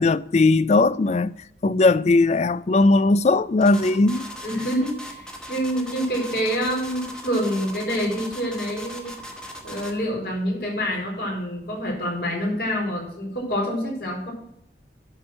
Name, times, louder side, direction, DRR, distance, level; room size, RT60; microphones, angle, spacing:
voice 1, 0.0-1.3 1.6-4.3, left 3 dB, 40° left, 0.4 m, -18 dB
sound 1, 3.6-10.0, left 1 dB, 5° left, 1.3 m, -38 dB
voice 2, 4.4-9.1 9.6-14.3, equal, 60° left, 4.5 m, -27 dB
11.5 x 4.4 x 7.5 m
head